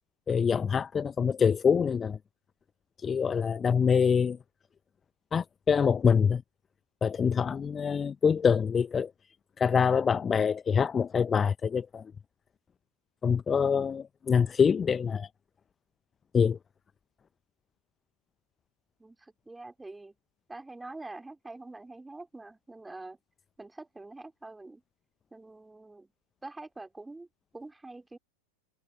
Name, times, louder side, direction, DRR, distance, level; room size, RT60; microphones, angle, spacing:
voice 1, 0.3-2.2 3.0-4.4 5.3-6.4 7.0-9.1 9.6-12.0 13.2-15.3 16.3-16.6, left 6 dB, 20° left, 0.9 m, -25 dB
voice 2, 19.0-20.1 20.5-23.2 23.6-24.8 25.3-26.1 26.4-27.3 27.5-28.2, right 2 dB, 5° right, 2.7 m, -45 dB
figure-of-eight pair, 90°, 0 cm